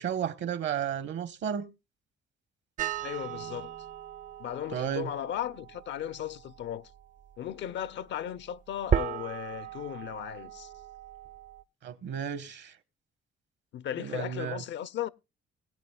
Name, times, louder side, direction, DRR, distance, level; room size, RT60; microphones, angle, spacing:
voice 1, 0.0-1.7 4.7-5.1 11.8-12.8 14.0-14.6, right 8 dB, 65° right, 1.1 m, -33 dB
sound 1, 2.8-11.6, right 9 dB, 40° right, 0.4 m, -37 dB
voice 2, 3.0-3.7 4.4-6.9 7.4-10.7 13.7-15.1, left 10 dB, 65° left, 0.5 m, -36 dB
20.5 x 8.3 x 2.2 m
cardioid pair, 90°, 20 cm